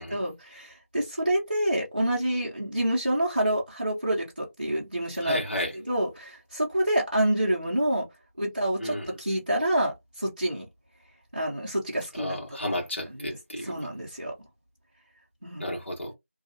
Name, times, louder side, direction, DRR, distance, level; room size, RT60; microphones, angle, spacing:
voice 1, 0.1-5.4 5.9-8.1 8.4-10.7 11.3-12.4 13.2-13.4 13.6-14.3 15.4-15.7, right 1 dB, 35° right, 0.6 m, -27 dB
voice 2, 5.2-5.7 8.8-9.1 12.1-13.9 15.6-16.1, left 1 dB, 55° left, 1.3 m, -32 dB
2.6 x 2.3 x 2.6 m
figure-of-eight pair, 175°, 8 cm